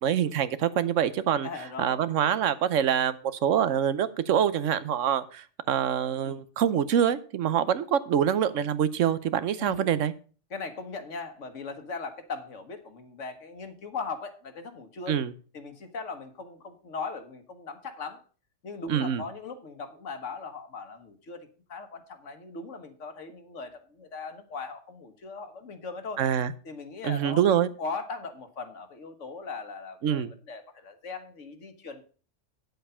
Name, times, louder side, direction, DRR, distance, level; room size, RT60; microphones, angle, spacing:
voice 1, 0.0-1.5 1.8-3.2 3.4-10.1 15.1-15.3 18.9-19.2 26.2-26.5 27.0-27.7 30.0-30.3, right 9 dB, 85° right, 15 dB, 1.1 m, -25 dB
voice 2, 1.4-2.0 6.2-6.4 9.6-9.9 10.5-15.2 15.5-18.2 18.6-26.2 26.6-27.4 27.8-32.0, left 4 dB, 80° left, 8 dB, 1.6 m, -39 dB
9.2 x 7.9 x 5.5 m, 0.39 s
omnidirectional pair, 1.3 m